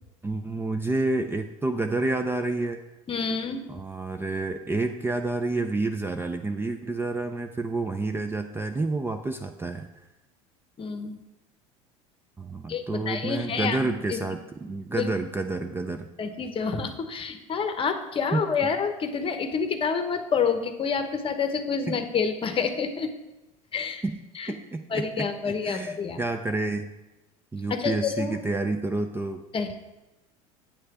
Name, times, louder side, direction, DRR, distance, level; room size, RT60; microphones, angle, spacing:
voice 1, 0.2-2.8 3.7-9.9 12.4-16.1 18.3-18.4 21.9-22.0 24.0-24.2 24.5-26.9 27.5-29.4, right 2 dB, 15° right, 6 dB, 0.4 m, -29 dB
voice 2, 3.1-3.6 10.8-11.2 12.7-13.8 14.1-14.2 14.6-14.7 15.0-15.1 16.2-23.1 23.7-24.0 24.3-24.5 24.9-26.2 27.7-28.3 29.5-29.9, left 5 dB, 30° left, 8 dB, 0.9 m, -28 dB
8.7 x 3.2 x 5.9 m, 1.0 s
hypercardioid pair, 85°, 18 cm